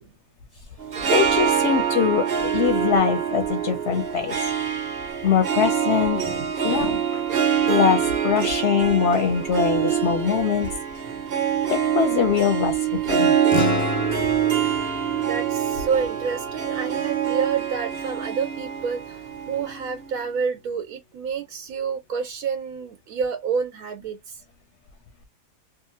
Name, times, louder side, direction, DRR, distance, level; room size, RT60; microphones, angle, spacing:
Harp, 0.8-20.2, right 8 dB, 50° right, 0.9 m, -25 dB
voice 1, 1.0-4.4 5.2-6.2 6.6-7.2 7.6-10.7 11.7-13.4, left 7 dB, 65° left, 0.8 m, -23 dB
sound 1, 13.5-18.2, left 4 dB, 85° left, 1.1 m, -32 dB
voice 2, 15.2-19.2 19.5-24.4, right 6 dB, 80° right, 1.0 m, -29 dB
2.8 x 2.4 x 2.7 m
omnidirectional pair, 1.5 m